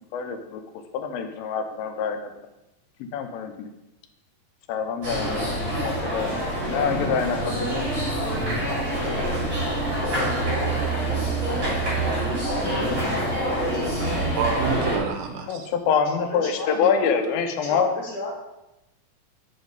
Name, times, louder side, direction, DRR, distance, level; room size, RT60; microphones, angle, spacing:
voice 1, 0.1-0.6 0.9-2.3 3.1-3.7 4.7-5.5 5.8-7.8 15.5-17.9, left 6 dB, 85° left, 7 dB, 2.5 m, -26 dB
sound 1, 5.0-15.0, right 1 dB, 35° right, 3.0 m, -26 dB
voice 2, 11.9-13.0 13.8-14.2 16.1-17.0 17.7-18.3, left 1 dB, 50° left, -5 dB, 2.7 m, -33 dB
voice 3, 14.3-15.7, right 6 dB, 75° right, 5 dB, 2.3 m, -28 dB
7.3 x 5.9 x 3.9 m, 0.95 s
omnidirectional pair, 4.2 m